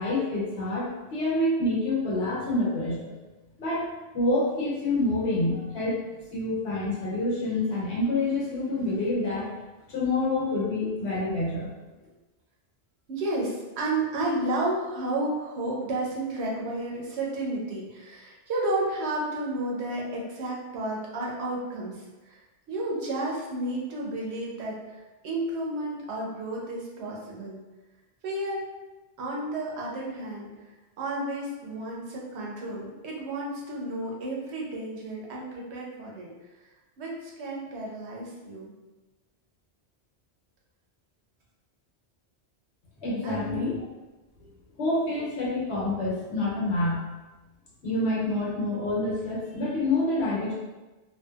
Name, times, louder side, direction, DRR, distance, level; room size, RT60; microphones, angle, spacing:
voice 1, 0.0-3.1 3.6-3.9 4.1-6.0 6.3-9.5 9.9-11.7 43.0-43.8 44.8-47.0 47.8-50.5, left 2 dB, 75° left, -6 dB, 1.1 m, -27 dB
voice 2, 13.1-22.4 22.7-27.6 28.2-28.7 29.2-30.5 31.0-36.3 37.0-38.7 43.2-43.6, right 2 dB, 75° right, -3 dB, 0.9 m, -32 dB
2.7 x 2.2 x 2.3 m, 1.1 s
omnidirectional pair, 1.1 m